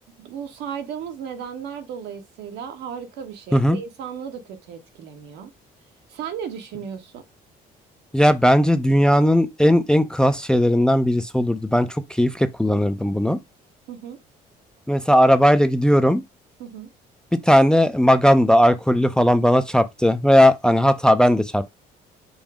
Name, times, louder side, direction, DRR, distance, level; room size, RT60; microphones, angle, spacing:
voice 1, 0.2-5.5 6.1-7.2 13.9-14.2 16.6-16.9, right 8 dB, 80° right, 1.2 m, -35 dB
voice 2, 8.1-13.4 14.9-16.2 17.5-21.6, equal, 5° left, 0.4 m, -17 dB
5.4 x 2.0 x 4.7 m
cardioid pair, 110°, 17 cm